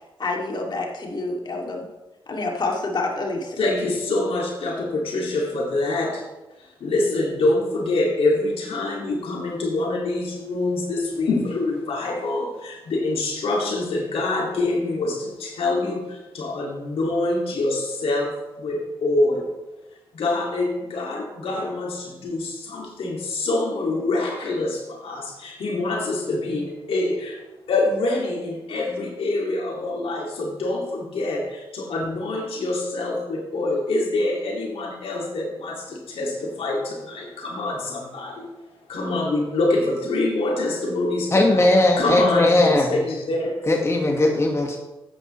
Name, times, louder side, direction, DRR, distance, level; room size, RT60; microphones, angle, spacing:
voice 1, 0.2-1.9 2.3-3.6, left 2 dB, 50° left, 0 dB, 2.5 m, -27 dB
voice 2, 3.6-6.3 6.6-19.5 20.1-27.4 27.7-38.5 38.9-43.7, left 2 dB, 75° left, -1 dB, 2.3 m, -25 dB
voice 3, 41.3-42.9 43.7-44.8, left 2 dB, 30° left, 1 dB, 1.7 m, -18 dB
12.5 x 9.2 x 3.2 m, 1.0 s
cardioid pair, 55°, 10 cm